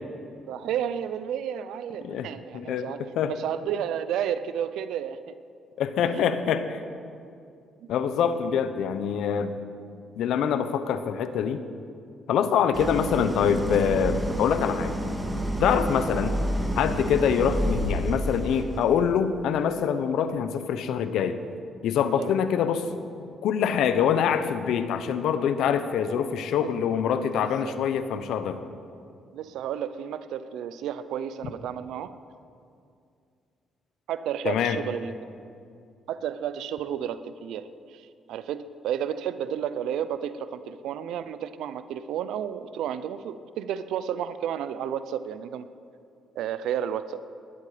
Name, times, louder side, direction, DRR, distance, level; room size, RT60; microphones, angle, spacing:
voice 1, 0.5-3.0 3.3-5.3 6.0-6.5 12.8-12.9 15.7-15.9 22.2-22.3 27.4-27.7 29.3-32.1 34.1-35.1 36.1-45.7 46.4-47.2, right 9 dB, 85° right, 13 dB, 0.6 m, -32 dB
voice 2, 2.0-3.3 5.8-6.8 7.9-9.6 10.2-11.6 12.3-14.9 15.6-16.4 16.8-21.4 21.8-22.9 23.4-28.6 34.4-34.8, left 8 dB, 80° left, 10 dB, 1.0 m, -25 dB
Idling, 12.7-18.8, equal, 10° right, 2.1 m, -29 dB
19.0 x 12.5 x 5.1 m, 2.4 s
cardioid pair, 90°, 0 cm